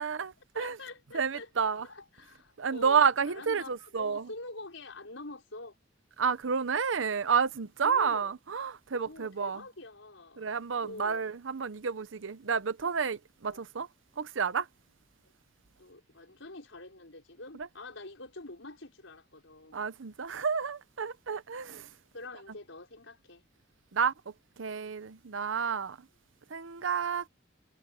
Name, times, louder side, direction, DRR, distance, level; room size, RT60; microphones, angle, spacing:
voice 1, 0.0-0.8 1.1-1.9 2.6-4.3 6.2-9.6 10.4-13.9 14.2-14.7 17.6-17.7 19.7-21.9 23.9-24.1 24.6-26.0 26.5-27.3, right 6 dB, 80° right, 0.7 m, -30 dB
voice 2, 0.5-1.5 1.8-3.0 3.3-5.8 7.8-8.4 8.9-10.5 10.8-11.3 13.5-13.6 15.2-15.3 15.8-19.8 22.1-23.4, left 2 dB, 80° left, 5.5 m, -46 dB
head